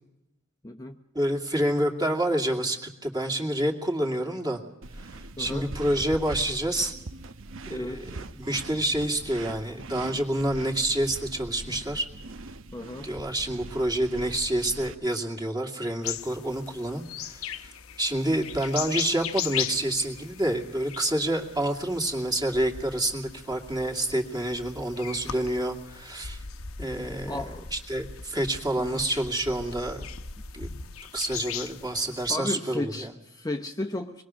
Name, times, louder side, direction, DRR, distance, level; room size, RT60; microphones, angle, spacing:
voice 1, 0.6-1.0 5.4-5.7 7.7-8.0 12.7-13.1 27.3-27.7 28.8-29.1 31.8-32.0 32.3-34.2, left 2 dB, 15° left, 4 dB, 0.9 m, -34 dB
voice 2, 1.1-4.6 5.0-6.9 7.7-12.1 13.0-17.7 18.0-26.4 26.8-27.4 27.7-30.1 30.5-30.8 31.1-33.1, right 1 dB, 20° right, 2 dB, 2.5 m, -28 dB
sound 1, 4.8-14.9, right 2 dB, 65° right, 1.1 m, -41 dB
sound 2, 16.0-32.4, left 8 dB, 75° left, 1.1 m, -38 dB
25.5 x 21.0 x 6.4 m, 0.88 s
head